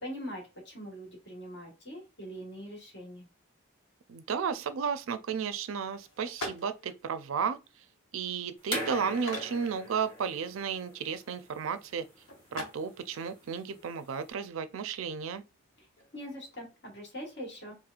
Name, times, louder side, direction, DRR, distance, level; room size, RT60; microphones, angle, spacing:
voice 1, 0.0-3.3 16.1-17.7, equal, 55° left, 1.4 m, -42 dB
voice 2, 4.1-7.6 8.1-12.1 12.5-15.4, right 6 dB, 80° right, 0.4 m, -33 dB
sound 1, 5.9-16.3, left 1 dB, 90° left, 1.1 m, -48 dB
sound 2, 8.6-14.2, equal, 25° left, 1.1 m, -41 dB
4.3 x 2.1 x 2.4 m
head